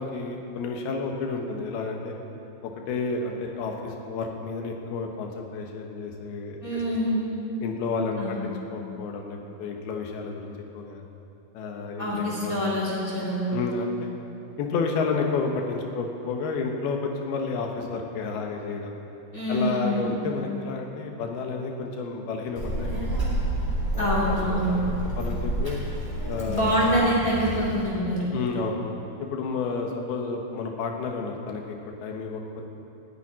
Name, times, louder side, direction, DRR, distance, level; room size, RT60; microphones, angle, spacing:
voice 1, 0.0-2.1 2.6-6.6 7.6-11.0 11.5-12.6 13.5-14.1 14.6-19.0 19.5-23.2 23.9-25.8 26.3-26.7 28.3-28.8 29.2-31.8 32.0-32.4, left 4 dB, 85° left, 2 dB, 3.2 m, -31 dB
voice 2, 6.6-7.3 8.2-8.5 12.0-13.4 19.3-20.2 24.0-24.8 26.5-28.2, equal, 25° left, -6 dB, 2.8 m, -25 dB
Child speech kid speaking, 22.5-27.8, right 1 dB, 5° right, 2.5 m, -29 dB
12.5 x 9.2 x 9.5 m, 2.8 s
omnidirectional pair, 4.3 m